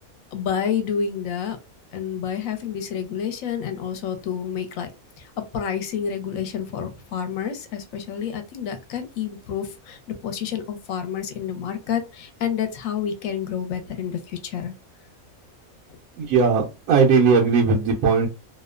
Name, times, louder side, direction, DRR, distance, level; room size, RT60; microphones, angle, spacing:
voice 1, 0.3-1.6 1.9-4.9 5.2-14.7, left 8 dB, 75° left, 1.0 m, -29 dB
voice 2, 16.2-18.3, right 5 dB, 85° right, 1.1 m, -18 dB
2.8 x 2.1 x 2.3 m
omnidirectional pair, 1.5 m